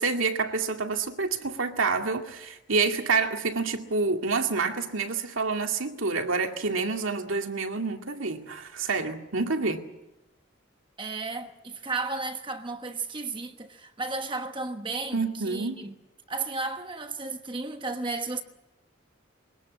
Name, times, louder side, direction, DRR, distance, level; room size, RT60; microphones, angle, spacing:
voice 1, 0.0-9.8 15.1-15.8, right 4 dB, 85° right, 2.2 m, -28 dB
voice 2, 11.0-15.9 16.3-18.4, right 3 dB, 25° right, 1.2 m, -33 dB
23.5 x 18.5 x 8.5 m
head